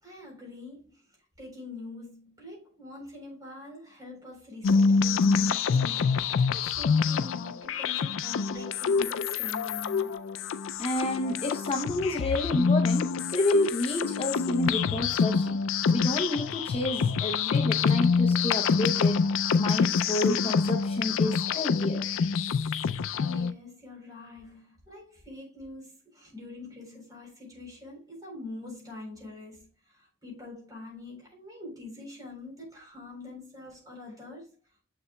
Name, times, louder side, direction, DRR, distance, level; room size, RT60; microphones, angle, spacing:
voice 1, 0.0-10.1 23.2-34.5, left 2 dB, 20° right, 3.8 m, -44 dB
sound 1, 4.6-23.5, left 5 dB, 80° left, 0.4 m, -26 dB
voice 2, 10.8-15.6 15.9-19.2 19.6-22.0, left 2 dB, 30° left, 0.7 m, -29 dB
7.0 x 6.8 x 2.2 m
head